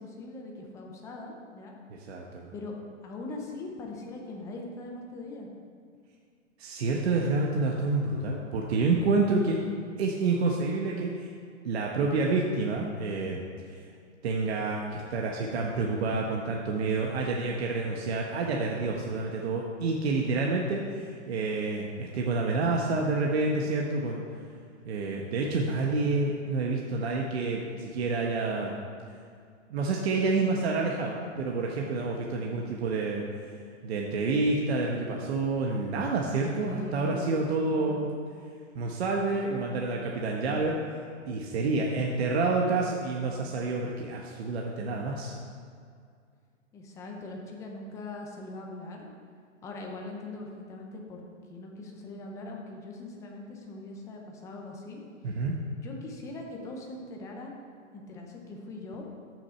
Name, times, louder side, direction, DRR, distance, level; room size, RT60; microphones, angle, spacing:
voice 1, 0.0-1.8 2.5-2.7 3.0-5.5 32.6-32.8 36.5-38.2 46.7-49.1 49.6-51.2 51.5-55.4 55.7-57.5 57.9-59.1, left 2 dB, 10° left, 0 dB, 0.6 m, -41 dB
voice 2, 1.9-2.5 6.6-9.6 10.0-11.3 11.6-13.4 13.7-13.8 14.2-24.2 24.9-28.7 29.7-33.2 33.8-38.1 38.7-40.8 41.3-45.3 55.2-55.6, right 3 dB, 55° right, -1 dB, 1.2 m, -28 dB
13.5 x 6.4 x 4.4 m, 2.2 s
hypercardioid pair, 155°, 37 cm